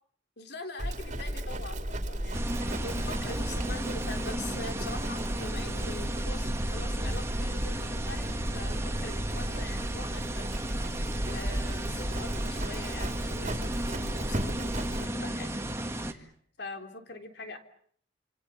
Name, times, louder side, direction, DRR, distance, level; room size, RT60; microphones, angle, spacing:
voice 1, 0.4-2.4 2.8-8.3 8.5-10.8 11.3-15.6 16.0-16.3 16.6-17.6, left 2 dB, 65° left, 6 dB, 3.6 m, -43 dB
Livestock farm animals working animals, 0.8-15.1, right 1 dB, 45° right, 2.8 m, -34 dB
sound 1, 2.3-16.1, right 1 dB, 15° right, 2.0 m, -35 dB
28.0 x 27.0 x 7.2 m, 0.62 s
head